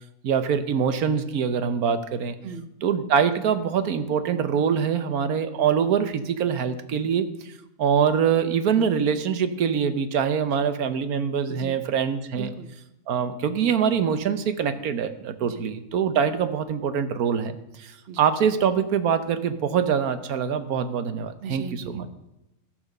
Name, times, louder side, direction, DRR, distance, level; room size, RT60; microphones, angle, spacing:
voice 1, 0.2-2.4 2.8-7.5 7.8-12.5 13.1-21.6 21.9-22.1, right 7 dB, 80° right, 11 dB, 1.4 m, -24 dB
voice 2, 12.4-12.7 15.4-15.7 18.1-18.2 21.4-22.1, right 5 dB, 50° right, 11 dB, 1.0 m, -37 dB
16.0 x 6.2 x 6.6 m, 0.91 s
omnidirectional pair, 1.5 m